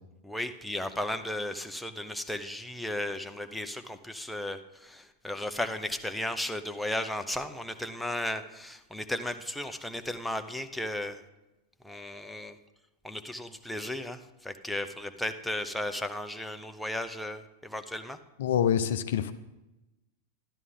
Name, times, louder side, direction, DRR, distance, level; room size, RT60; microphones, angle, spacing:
voice 1, 0.2-11.2 11.8-12.6 13.0-18.2, left 1 dB, 5° left, 7 dB, 0.7 m, -35 dB
voice 2, 18.4-19.3, left 9 dB, 60° left, 11 dB, 0.6 m, -26 dB
12.5 x 12.0 x 3.7 m, 0.99 s
figure-of-eight pair, 90°, 0 cm